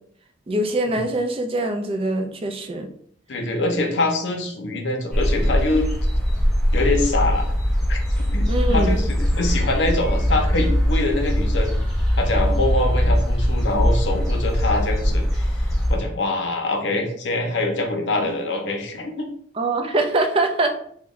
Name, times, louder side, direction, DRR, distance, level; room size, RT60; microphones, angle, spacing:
voice 1, 0.5-2.9 8.5-9.0 19.6-20.7, right 2 dB, 30° right, 6 dB, 0.4 m, -23 dB
voice 2, 3.3-5.9 6.7-7.6 7.9-8.0 8.3-11.8 12.2-19.3, left 2 dB, 70° left, 3 dB, 0.6 m, -24 dB
sound 1, 5.1-16.0, equal, ahead, 0.8 m, -21 dB
3.0 x 2.1 x 3.5 m, 0.62 s
head